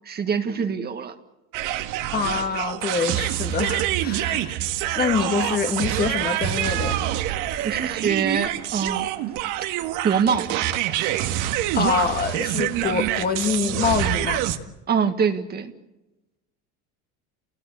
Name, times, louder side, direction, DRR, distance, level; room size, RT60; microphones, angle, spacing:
voice 1, 0.0-1.1 7.6-9.1 10.0-10.5 14.9-15.7, right 6 dB, 25° right, 1.7 m, -24 dB
sound 1, 1.5-14.6, right 13 dB, 60° right, 1.9 m, -26 dB
voice 2, 2.1-4.5 5.0-7.0 11.7-14.4, left 6 dB, 25° left, 1.8 m, -25 dB
29.5 x 19.0 x 8.4 m
supercardioid pair, 135°, 34 cm